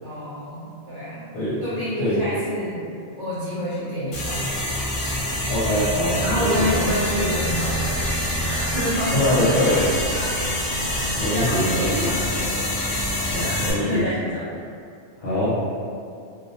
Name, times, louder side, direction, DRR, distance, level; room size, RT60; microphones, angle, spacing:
voice 1, 0.0-1.3 1.6-2.9 3.2-4.6 6.2-9.9 10.8-13.0 13.3-14.6, equal, 55° right, -12 dB, 0.6 m, -28 dB
sound 1, 4.1-13.7, left 1 dB, 50° left, 0.4 m, -26 dB
voice 2, 5.3-6.7 9.1-9.8 11.2-12.1 13.3-14.0 15.2-15.5, left 1 dB, 65° left, -11 dB, 0.9 m, -23 dB
2.4 x 2.0 x 2.7 m, 2.4 s
omnidirectional pair, 1.2 m